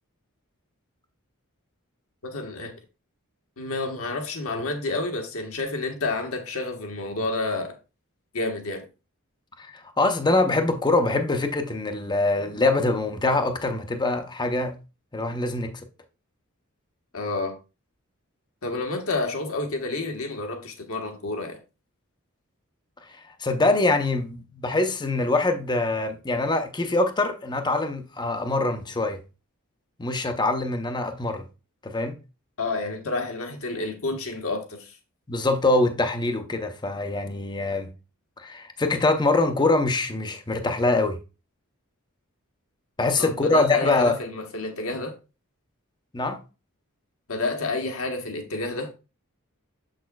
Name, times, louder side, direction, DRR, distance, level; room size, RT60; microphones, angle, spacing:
voice 1, 2.2-2.7 3.6-7.7 8.3-8.8 17.1-17.6 18.6-21.6 32.6-35.0 43.2-45.1 47.3-48.9, left 2 dB, 70° left, 1.3 m, -29 dB
voice 2, 9.6-14.7 15.1-15.7 23.1-29.2 30.0-31.4 31.8-32.2 35.3-37.9 38.4-41.2 43.0-44.2 46.1-46.4, left 2 dB, 20° left, 0.7 m, -24 dB
7.0 x 6.4 x 2.3 m
head